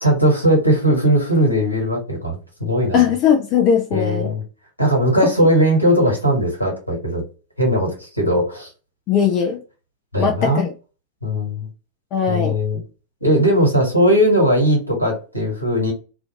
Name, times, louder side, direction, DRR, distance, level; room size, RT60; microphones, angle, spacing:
voice 1, 0.0-3.0 3.9-4.4 4.8-7.2 7.6-8.7 10.1-10.7 11.2-11.7 12.3-12.8 13.2-15.9, equal, 90° left, 1.4 m, -18 dB
voice 2, 2.9-4.3 9.1-9.6 10.2-10.7 12.1-12.6, left 7 dB, 40° left, 0.5 m, -18 dB
2.5 x 2.4 x 2.7 m
figure-of-eight pair, 90°, 0 cm